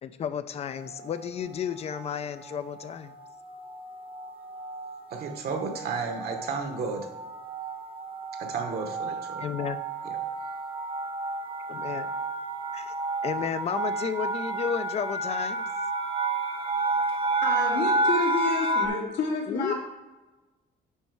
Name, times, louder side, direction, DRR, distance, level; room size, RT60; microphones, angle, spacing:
voice 1, 0.0-3.1 9.4-9.8 11.7-12.1 12.7-12.9 13.2-15.6 19.5-19.7, left 7 dB, 35° left, 12 dB, 0.4 m, -32 dB
sound 1, 0.7-1.2 2.0-2.3 2.6-2.8 3.1-18.9, right 2 dB, 30° right, 0.6 m, -31 dB
voice 2, 5.1-7.1 8.4-9.4 10.1-10.2, right 4 dB, 60° right, 3 dB, 1.0 m, -32 dB
voice 3, 17.4-19.7, left 3 dB, 85° left, -2 dB, 2.2 m, -29 dB
10.0 x 4.2 x 4.6 m, 1.2 s
cardioid pair, 160°, 18 cm